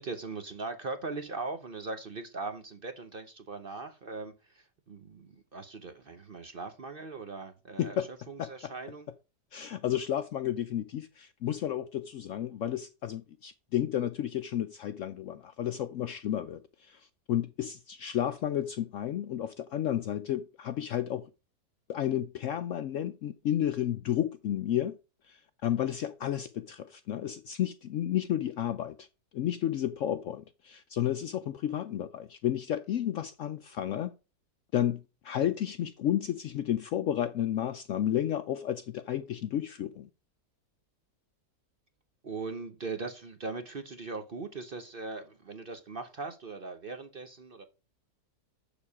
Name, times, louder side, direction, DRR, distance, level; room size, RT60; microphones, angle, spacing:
voice 1, 0.0-9.1 42.2-47.6, right 3 dB, 45° right, 0.8 m, -40 dB
voice 2, 8.4-8.7 9.5-21.3 21.9-25.0 25.3-29.1 29.3-34.1 34.7-40.1, left 11 dB, 70° left, 0.8 m, -32 dB
7.0 x 7.0 x 4.8 m
omnidirectional pair, 1.7 m